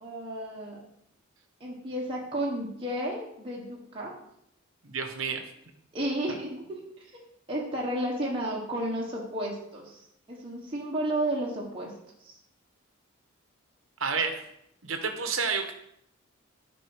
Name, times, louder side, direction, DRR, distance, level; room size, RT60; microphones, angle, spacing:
voice 1, 0.0-0.8 1.6-4.1 5.9-7.0 7.5-10.0 10.3-11.9 12.2-12.4, right 1 dB, 25° right, -4 dB, 1.4 m, -32 dB
voice 2, 4.8-5.4 14.0-14.4 14.8-15.7, right 5 dB, 75° right, 6 dB, 1.1 m, -29 dB
9.7 x 5.3 x 4.9 m, 0.76 s
head